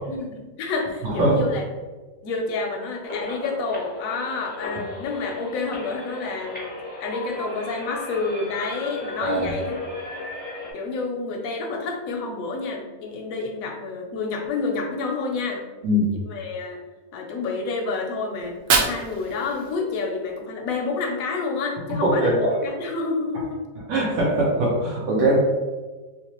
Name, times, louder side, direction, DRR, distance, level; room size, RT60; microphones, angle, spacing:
voice 1, 0.1-1.6 2.2-9.8 10.7-15.6 16.1-16.8 17.1-23.6, left 4 dB, 65° left, 1 dB, 0.9 m, -29 dB
voice 2, 1.0-1.4 9.2-9.4 15.8-16.1 22.0-22.6 23.9-25.4, right 1 dB, 90° right, -4 dB, 1.5 m, -21 dB
sound 1, 3.1-10.7, left 2 dB, 15° left, 0.4 m, -35 dB
Fire, 18.4-20.4, right 4 dB, 65° right, 0.8 m, -26 dB
3.3 x 3.0 x 2.9 m, 1.3 s
omnidirectional pair, 1.8 m